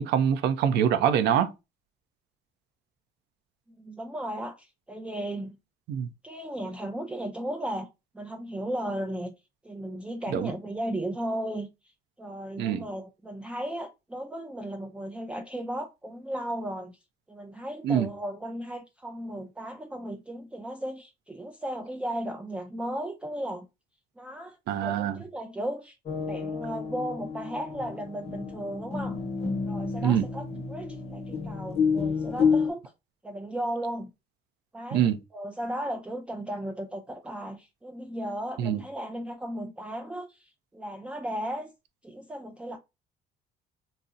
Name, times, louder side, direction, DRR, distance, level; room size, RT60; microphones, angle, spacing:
voice 1, 0.0-1.5 5.9-6.1 10.3-10.5 12.6-12.8 17.8-18.1 24.7-25.2 30.0-30.3 34.9-35.2 38.6-38.8, right 9 dB, 80° right, 0.5 m, -24 dB
voice 2, 3.8-5.6 6.2-7.9 8.1-9.3 9.6-11.7 12.2-17.0 17.3-23.7 24.2-25.9 26.2-29.2 29.7-32.8 33.2-34.1 34.7-41.7 42.0-42.8, right 1 dB, 5° right, 0.3 m, -35 dB
sound 1, 26.1-32.7, left 5 dB, 40° left, 0.9 m, -29 dB
2.6 x 2.0 x 3.6 m
cardioid pair, 110°, 17 cm